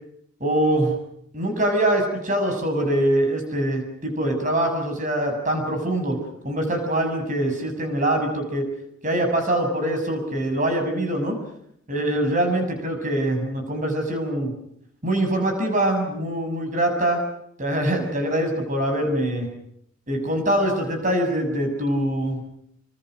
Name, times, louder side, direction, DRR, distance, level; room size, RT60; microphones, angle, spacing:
voice 1, 0.4-0.9 1.3-6.2 6.4-8.7 9.0-11.4 11.9-14.5 15.0-17.2 17.6-19.5 20.1-22.4, right 1 dB, 35° right, 5 dB, 6.7 m, -23 dB
27.0 x 25.0 x 6.4 m, 0.71 s
head